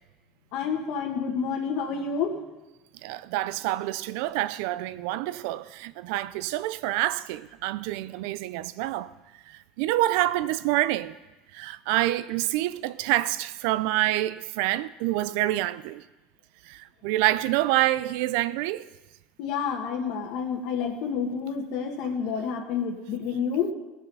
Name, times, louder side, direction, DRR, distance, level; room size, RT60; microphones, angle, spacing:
voice 1, 0.5-2.3 19.4-23.7, left 6 dB, 60° left, 1.5 m, -29 dB
voice 2, 3.0-9.1 9.5-11.1 11.5-16.0 16.7-18.8, right 16 dB, 70° right, 0.5 m, -27 dB
17.0 x 7.2 x 5.5 m
cardioid pair, 150°, 0 cm